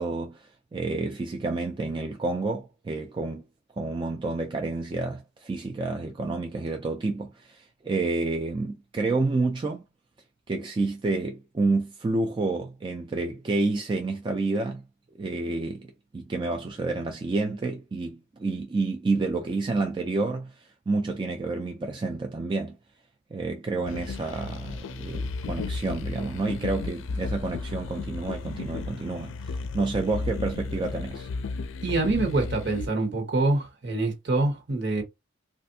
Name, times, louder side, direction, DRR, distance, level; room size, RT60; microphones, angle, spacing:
voice 1, 0.0-3.4 3.8-9.8 10.5-14.8 15.2-22.8 23.3-31.3, right 3 dB, 25° right, 0.3 m, -29 dB
sound 1, 23.9-32.9, left 4 dB, 75° left, 0.4 m, -34 dB
voice 2, 31.8-35.0, right 2 dB, 55° right, 1.1 m, -25 dB
3.3 x 2.5 x 2.6 m
head